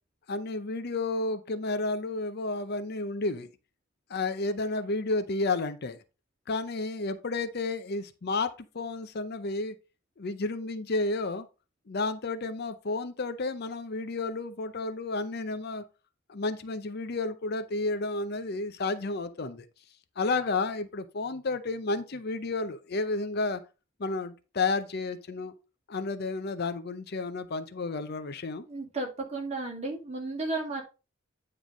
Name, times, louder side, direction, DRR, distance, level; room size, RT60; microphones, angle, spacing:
voice 1, 0.3-3.5 4.1-6.0 6.5-8.5 8.7-9.7 10.2-11.5 11.9-15.8 16.3-19.7 20.2-23.6 24.0-25.6 25.9-28.6, left 3 dB, 50° left, 0.6 m, -31 dB
voice 2, 28.7-30.8, right 2 dB, 30° right, 2.2 m, -33 dB
9.2 x 3.3 x 5.2 m
head